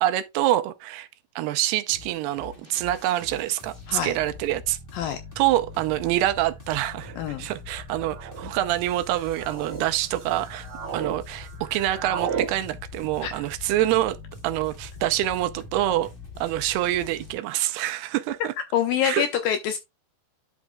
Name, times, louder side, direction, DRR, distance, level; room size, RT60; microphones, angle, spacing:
voice 1, 0.0-1.1 1.4-4.8 5.4-10.7 10.9-14.2 14.4-16.1 16.4-18.5 19.0-19.2, right 14 dB, 80° right, 2.6 m, -26 dB
sound 1, 1.9-17.3, left 4 dB, 40° left, 0.7 m, -43 dB
sound 2, 4.5-4.6 5.5-5.8 6.8-7.2 8.0-8.5 9.1-9.8 10.3-11.2 11.4-12.5, right 7 dB, 50° right, 2.0 m, -34 dB
voice 2, 18.7-19.8, left 9 dB, 75° left, 2.2 m, -25 dB
11.0 x 6.2 x 2.3 m
omnidirectional pair, 4.8 m